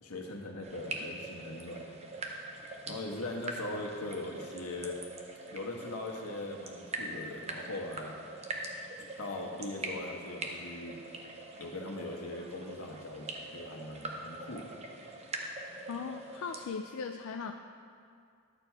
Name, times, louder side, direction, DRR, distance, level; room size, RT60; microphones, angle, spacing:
voice 1, 0.0-1.8 2.9-5.0 5.5-8.2 9.2-11.0 11.6-14.7, left 2 dB, 85° left, 0 dB, 1.3 m, -40 dB
Very Slow Dropping Water, 0.6-16.7, right 2 dB, 30° right, 0.7 m, -43 dB
voice 2, 15.9-17.5, left 5 dB, 65° left, 5 dB, 0.3 m, -38 dB
11.0 x 6.8 x 4.5 m, 2.3 s
head